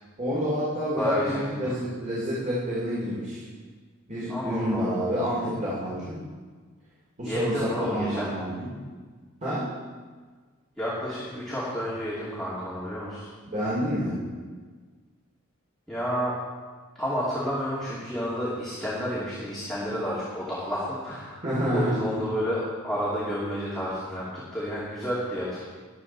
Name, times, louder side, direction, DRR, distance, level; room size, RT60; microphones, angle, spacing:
voice 1, 0.2-3.4 4.1-6.2 7.2-8.8 9.4-9.7 13.4-14.2 21.4-21.9, equal, 35° right, -7 dB, 2.8 m, -28 dB
voice 2, 1.0-1.7 4.3-4.8 7.2-8.3 10.8-13.3 15.9-16.3 17.0-21.4 21.7-25.7, equal, ahead, -9 dB, 2.7 m, -30 dB
21.5 x 8.3 x 4.3 m, 1.5 s
head